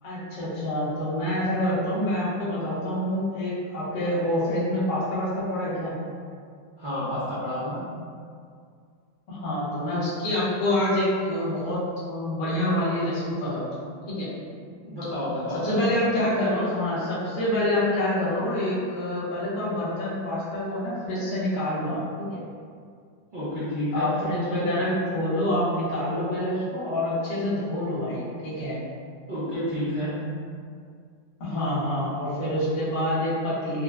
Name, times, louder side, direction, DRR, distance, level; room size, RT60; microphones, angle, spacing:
voice 1, 0.0-5.9 9.3-13.6 14.1-14.3 15.5-22.3 23.9-28.8 31.4-33.8, left 1 dB, 50° left, -10 dB, 1.0 m, -27 dB
voice 2, 6.8-7.8 14.8-15.8 23.3-24.2 29.3-30.2, left 1 dB, 55° right, -13 dB, 0.5 m, -30 dB
4.2 x 2.0 x 2.3 m, 2.2 s
omnidirectional pair, 2.0 m